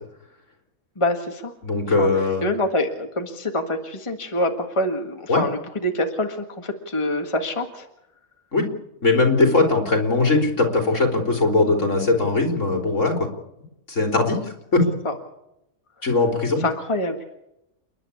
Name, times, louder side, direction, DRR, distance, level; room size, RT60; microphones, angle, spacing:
voice 1, 1.0-1.5 2.0-7.9 15.0-15.1 16.6-17.2, left 1 dB, 20° left, 4 dB, 1.8 m, -26 dB
voice 2, 1.6-2.5 5.3-5.4 8.5-8.7 9.0-13.3 13.9-14.8 16.0-16.6, left 3 dB, 60° left, 3 dB, 3.9 m, -20 dB
29.5 x 11.0 x 8.5 m, 0.84 s
omnidirectional pair, 1.4 m